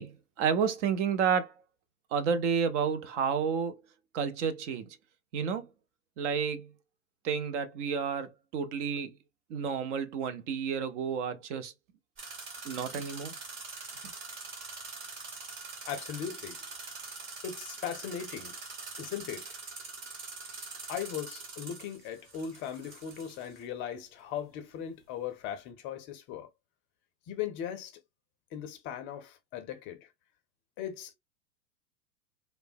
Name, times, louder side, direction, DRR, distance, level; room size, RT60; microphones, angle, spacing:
voice 1, 0.0-1.5 2.1-3.8 4.1-4.9 5.3-5.7 6.2-6.7 7.2-9.1 9.5-11.7 12.6-13.3, right 6 dB, 55° right, 0.6 m, -30 dB
sound 1, 12.2-23.6, right 3 dB, 30° right, 1.1 m, -44 dB
voice 2, 15.9-16.6 17.4-18.6 19.0-19.6 20.9-26.5 27.3-28.0 28.5-30.1 30.8-31.1, left 9 dB, 30° left, 0.5 m, -38 dB
3.2 x 2.1 x 2.6 m
hypercardioid pair, 105°, 43 cm